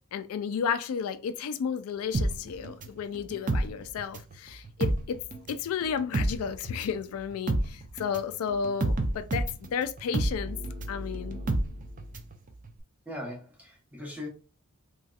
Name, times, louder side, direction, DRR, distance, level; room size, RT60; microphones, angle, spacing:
voice 1, 0.1-5.2 5.5-10.6 10.9-11.4, left 6 dB, 75° left, 0.3 m, -32 dB
sound 1, 2.1-4.4 4.7-12.4 12.7-12.8, right 2 dB, 35° right, 0.4 m, -30 dB
voice 2, 13.1-14.3, left 1 dB, 5° right, 0.8 m, -39 dB
3.0 x 2.7 x 2.3 m
head